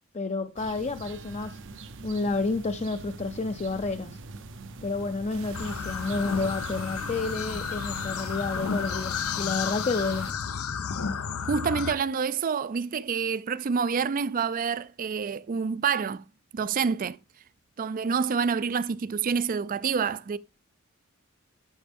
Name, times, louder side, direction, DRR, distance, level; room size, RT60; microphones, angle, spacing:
voice 1, 0.1-1.6 2.0-4.2 4.8-10.3, left 3 dB, 30° left, 0.5 m, -30 dB
sound 1, 0.6-8.1, right 3 dB, 60° right, 0.8 m, -43 dB
sound 2, 5.3-10.3, right 5 dB, 80° right, 1.2 m, -44 dB
sound 3, 5.5-11.9, left 6 dB, 85° left, 0.6 m, -32 dB
voice 2, 11.4-16.2 16.5-17.2 17.8-20.4, right 6 dB, 40° right, 0.4 m, -27 dB
11.5 x 6.3 x 3.5 m
head